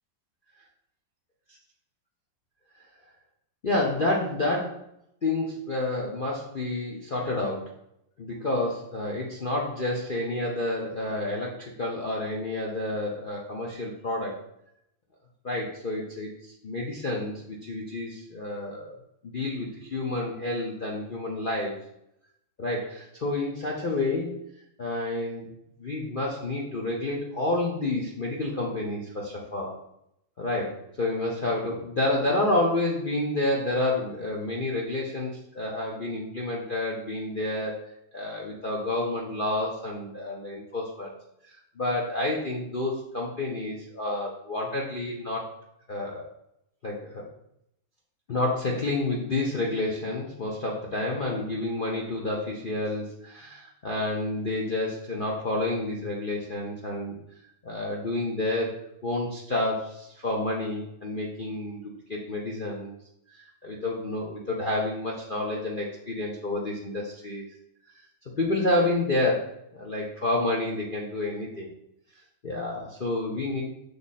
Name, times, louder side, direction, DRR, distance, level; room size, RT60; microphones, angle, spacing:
voice 1, 3.6-4.8 5.2-7.7 8.2-14.4 15.4-19.0 19.2-21.8 22.6-24.4 24.8-25.5 25.8-29.7 30.4-41.1 41.5-45.4 45.9-46.3 46.8-47.3 48.3-57.1 57.6-58.7 59.0-61.8 62.1-62.9 63.3-67.4 68.4-71.7 72.4-73.6, left 2 dB, 65° left, -3 dB, 0.5 m, -29 dB
6.8 x 3.4 x 4.1 m, 0.79 s
omnidirectional pair, 2.1 m